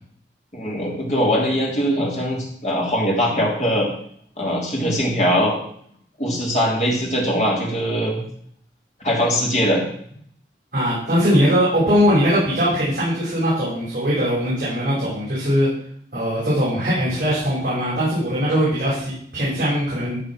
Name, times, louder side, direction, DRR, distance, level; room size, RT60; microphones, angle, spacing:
voice 1, 0.5-3.9 4.4-5.5 6.2-8.2 9.0-9.8, equal, 40° left, -2 dB, 3.4 m, -21 dB
voice 2, 10.7-15.7 16.1-20.2, equal, 50° right, -9 dB, 5.7 m, -20 dB
14.5 x 5.4 x 6.2 m, 0.63 s
head